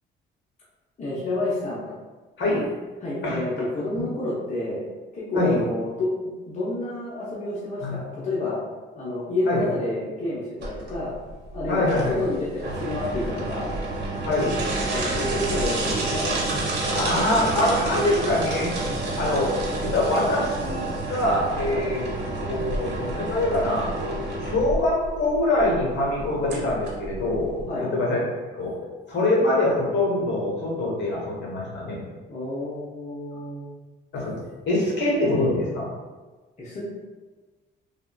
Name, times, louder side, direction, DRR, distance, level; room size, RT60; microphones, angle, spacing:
voice 1, 1.0-1.9 3.0-4.8 5.1-8.6 9.0-11.1 11.5-13.7 14.8-16.3 19.0-19.1 21.7-21.9 27.7-27.9 32.3-33.8 36.6-36.8, left 2 dB, 35° left, -7 dB, 0.8 m, -29 dB
sound 1, 10.6-27.6, right 2 dB, 60° right, 0.9 m, -29 dB
voice 2, 11.7-12.2 14.2-14.6 16.9-18.7 19.2-19.5 19.8-22.1 22.4-23.9 24.4-28.2 28.6-28.7 29.1-32.0 34.1-34.4 34.7-35.9, left 1 dB, 65° left, -4 dB, 1.1 m, -24 dB
3.4 x 2.4 x 2.2 m, 1.3 s
cardioid pair, 90°, 20 cm